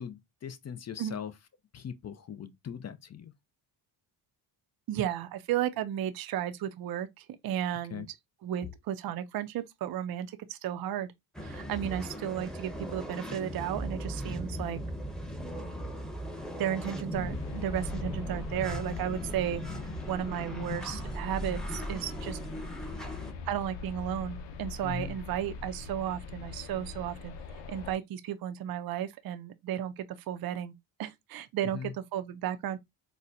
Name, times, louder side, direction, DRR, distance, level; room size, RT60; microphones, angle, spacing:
voice 1, 0.0-1.3 1.7-3.3 7.9-8.1 24.8-25.2 31.7-31.9, left 8 dB, 35° left, 0.5 m, -40 dB
voice 2, 4.9-8.0 8.4-11.1 11.4-14.8 16.6-19.6 20.1-22.4 23.5-27.3 27.7-30.7 31.0-32.8, right 10 dB, 50° right, 0.5 m, -34 dB
sound 1, 11.3-23.3, equal, ahead, 0.9 m, -38 dB
sound 2, 17.1-27.9, left 5 dB, 90° left, 0.7 m, -42 dB
4.2 x 2.1 x 2.5 m
cardioid pair, 85°, 49 cm